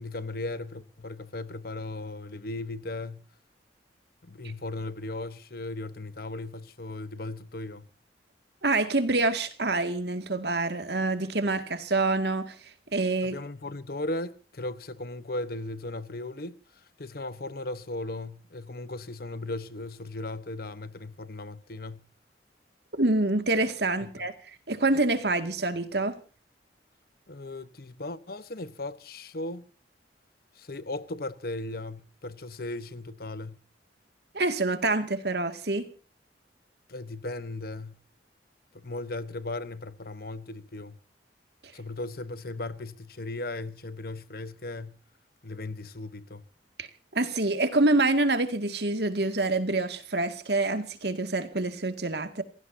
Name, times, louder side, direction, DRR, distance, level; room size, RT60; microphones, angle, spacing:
voice 1, 0.0-3.3 4.2-7.9 13.2-16.6 17.0-22.1 24.0-24.1 27.3-29.7 30.6-33.6 36.9-38.0 38.7-41.0 41.7-45.0 45.4-46.4, left 2 dB, 55° left, 1.1 m, -37 dB
voice 2, 8.6-12.6 12.9-13.4 22.9-24.3 24.7-26.2 34.3-35.9 41.6-41.7 46.8-46.9 47.1-52.4, right 2 dB, 65° right, 2.1 m, -26 dB
28.0 x 16.5 x 2.8 m
head